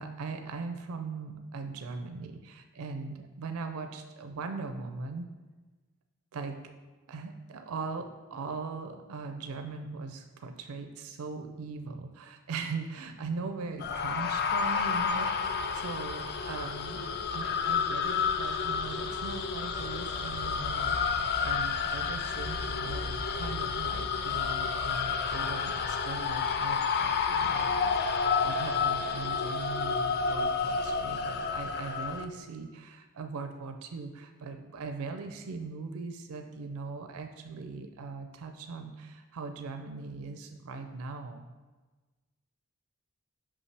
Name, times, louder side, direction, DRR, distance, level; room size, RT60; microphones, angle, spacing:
voice 1, 0.0-5.3 6.3-6.6 7.1-41.5, right 4 dB, 70° right, 6 dB, 0.4 m, -40 dB
sound 1, 13.8-32.3, left 5 dB, 45° left, 0.4 m, -30 dB
5.5 x 5.4 x 3.3 m, 1.3 s
head